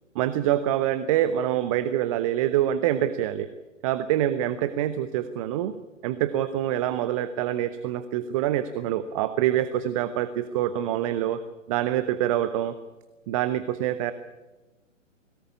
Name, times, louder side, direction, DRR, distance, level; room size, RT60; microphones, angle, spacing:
voice 1, 0.1-3.5 3.8-5.7 6.0-11.4 11.7-12.8 13.3-14.1, right 12 dB, 25° right, 13 dB, 0.9 m, -25 dB
22.0 x 18.5 x 8.5 m, 1.1 s
figure-of-eight pair, 130°, 39 cm